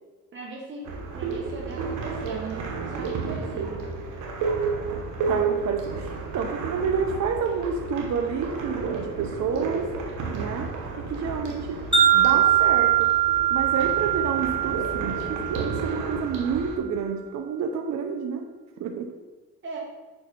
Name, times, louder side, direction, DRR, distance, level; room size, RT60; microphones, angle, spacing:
voice 1, 0.3-3.9 19.6-19.8, right 3 dB, 40° right, -2 dB, 1.3 m, -39 dB
sound 1, 0.9-16.8, right 4 dB, 85° right, 1.2 m, -32 dB
voice 2, 5.3-10.0 10.3-13.1 13.5-18.5 18.8-19.1, right 6 dB, 65° right, 4 dB, 0.7 m, -29 dB
Wind chime, 11.9-16.2, right 10 dB, 15° right, 1.6 m, -22 dB
5.2 x 4.8 x 5.5 m, 1.3 s
cardioid pair, 90°, 30 cm